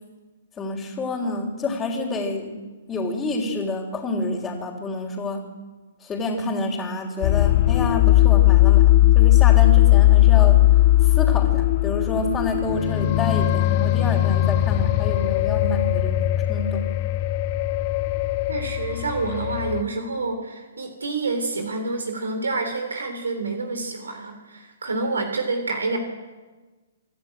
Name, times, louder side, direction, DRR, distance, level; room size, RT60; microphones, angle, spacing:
voice 1, 0.6-2.6 2.9-5.5 6.0-10.6 11.0-16.9, left 2 dB, 15° left, -5 dB, 3.6 m, -28 dB
sound 1, 7.2-19.8, left 15 dB, 40° left, 1.1 m, -18 dB
voice 2, 18.5-26.0, right 3 dB, 85° right, 6 dB, 3.3 m, -28 dB
25.5 x 12.5 x 8.9 m, 1.3 s
hypercardioid pair, 130°, 0 cm